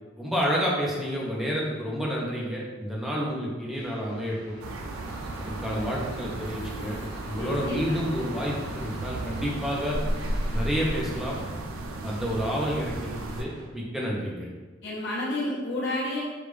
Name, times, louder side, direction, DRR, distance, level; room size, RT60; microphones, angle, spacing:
voice 1, 0.2-4.6 5.4-7.0 7.3-10.0 10.5-11.4 12.0-14.5, equal, ahead, -5 dB, 0.7 m, -29 dB
sound 1, 3.7-4.6 4.9-11.4 11.9-13.7, equal, 50° right, 0.8 m, -47 dB
sound 2, 4.6-13.4, right 1 dB, 90° right, 0.4 m, -34 dB
sound 3, 6.5-7.7, left 1 dB, 40° left, 0.4 m, -48 dB
voice 2, 7.4-8.3 14.8-16.2, left 1 dB, 55° left, -6 dB, 1.0 m, -31 dB
5.0 x 2.4 x 3.3 m, 1.3 s
head